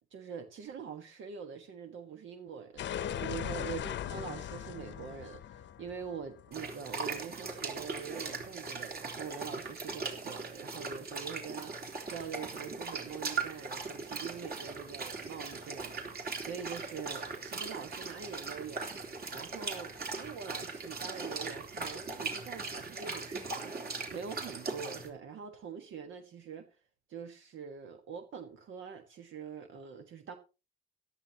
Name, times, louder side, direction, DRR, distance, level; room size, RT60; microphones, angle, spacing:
voice 1, 0.1-23.7 24.1-26.7 27.1-30.4, right 6 dB, 75° right, 1.5 m, -44 dB
sound 1, 2.8-7.5, left 10 dB, 65° left, 0.8 m, -39 dB
sound 2, 6.5-25.1, right 4 dB, 50° right, 3.4 m, -39 dB
16.5 x 12.5 x 2.9 m
cardioid pair, 90°, 20 cm